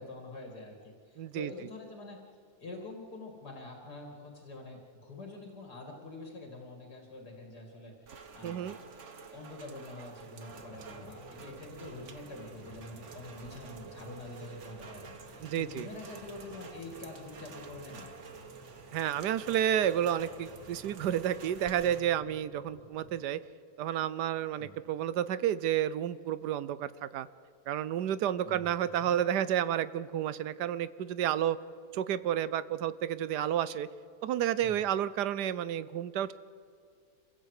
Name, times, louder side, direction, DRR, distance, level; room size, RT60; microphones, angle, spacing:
voice 1, 0.0-2.2 2.6-8.8 9.3-18.2 24.6-24.7 28.4-28.7 29.0-29.2 34.6-34.8, left 2 dB, 70° left, 1 dB, 3.0 m, -46 dB
voice 2, 1.2-1.5 8.4-8.8 15.4-15.9 18.9-23.4 23.8-27.3 27.7-31.6 31.9-33.9 34.2-36.3, right 10 dB, 75° right, 16 dB, 1.3 m, -31 dB
Rain, 8.0-22.0, right 5 dB, 45° right, 1.5 m, -49 dB
sound 1, 10.5-23.2, equal, 20° left, 4.5 m, -54 dB
26.5 x 16.5 x 8.3 m, 2.4 s
omnidirectional pair, 1.8 m